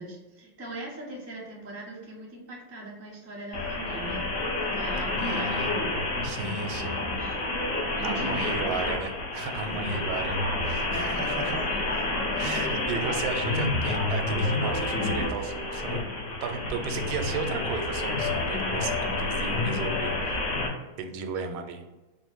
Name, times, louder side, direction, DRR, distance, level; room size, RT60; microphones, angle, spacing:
voice 1, 0.0-4.3 4.7-5.9 6.4-7.4 7.9-8.9 9.6-10.1 10.8-11.8, right 1 dB, 15° right, -3 dB, 0.6 m, -41 dB
sound 1, 3.5-20.7, left 2 dB, 65° left, 0.7 m, -29 dB
voice 2, 5.2-5.8 6.2-7.0 8.0-11.6 12.3-20.4 21.0-21.8, right 5 dB, 85° right, 6 dB, 1.4 m, -35 dB
3.2 x 2.5 x 4.4 m, 1.2 s
omnidirectional pair, 2.2 m